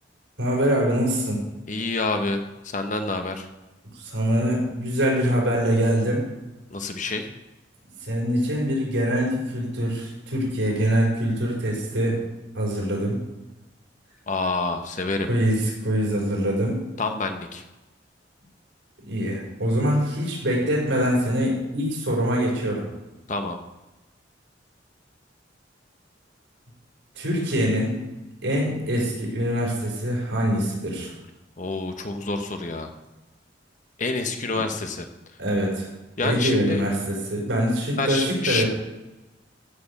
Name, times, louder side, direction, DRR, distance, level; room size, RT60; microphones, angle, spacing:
voice 1, 0.4-1.4 3.9-6.2 8.0-12.2 12.5-13.2 15.3-16.8 19.0-22.9 27.2-27.9 28.4-31.1 35.4-35.9 36.2-38.7, equal, 90° right, -3 dB, 5.6 m, -24 dB
voice 2, 1.7-3.5 6.7-7.3 14.3-15.3 17.0-17.6 23.3-23.6 31.6-32.9 34.0-35.1 36.2-36.8 38.0-38.6, left 3 dB, 45° left, 6 dB, 1.1 m, -27 dB
14.5 x 6.9 x 6.7 m, 1.0 s
head